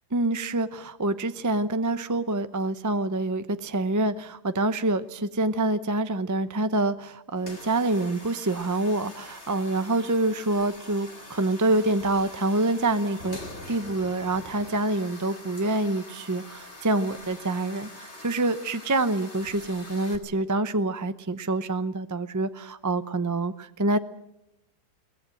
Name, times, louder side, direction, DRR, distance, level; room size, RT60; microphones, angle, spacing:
voice 1, 0.1-13.4 13.7-24.0, right 2 dB, 25° right, 11 dB, 0.4 m, -26 dB
sound 1, 7.4-20.2, left 2 dB, 45° left, 3.0 m, -44 dB
22.5 x 19.0 x 7.7 m, 0.83 s
omnidirectional pair, 1.7 m